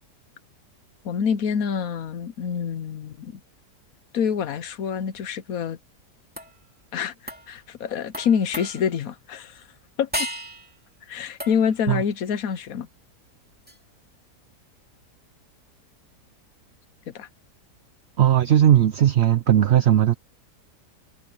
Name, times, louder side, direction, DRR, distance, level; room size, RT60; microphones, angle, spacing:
voice 1, 1.0-3.3 4.1-5.8 6.9-9.6 10.0-10.3 11.1-12.9 17.1-17.3, left 7 dB, 60° left, 1.2 m, -26 dB
sound 1, 6.4-6.7 7.3-7.6 8.1-9.1 10.1-10.8 11.4-11.9 13.7-13.8, equal, 5° right, 2.4 m, -34 dB
voice 2, 18.2-20.1, right 11 dB, 60° right, 0.7 m, -17 dB
omnidirectional pair, 1.8 m